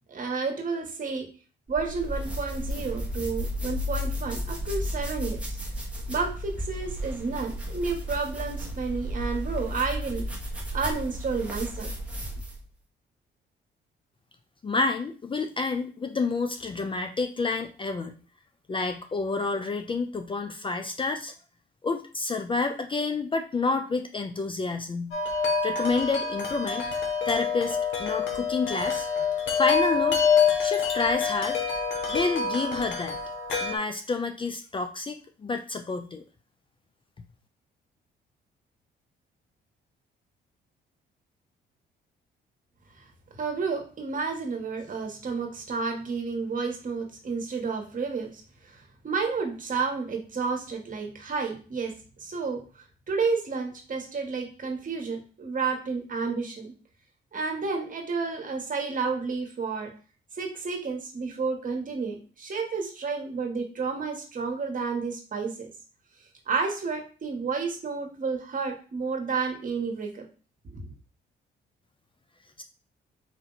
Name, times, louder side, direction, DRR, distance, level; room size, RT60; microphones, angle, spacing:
voice 1, 0.1-1.3 1.7-5.6 6.1-10.2 10.7-11.9 43.0-43.1 43.4-51.9 52.2-56.7 57.3-59.9 60.4-65.7 66.5-70.2 70.7-70.8, right 4 dB, 40° right, 3 dB, 1.3 m, -31 dB
sound 1, 1.7-12.6, equal, 5° right, 1.1 m, -33 dB
voice 2, 14.6-18.2 18.7-21.3 21.8-25.2 25.6-26.9 27.3-29.1 29.6-30.2 30.6-31.6 32.1-33.2 33.6-36.2 72.6-72.7, left 4 dB, 25° left, 7 dB, 0.4 m, -29 dB
Wind chime, 25.1-33.8, left 5 dB, 75° left, 1.1 m, -26 dB
4.6 x 2.7 x 3.9 m, 0.37 s
cardioid pair, 90°, 20 cm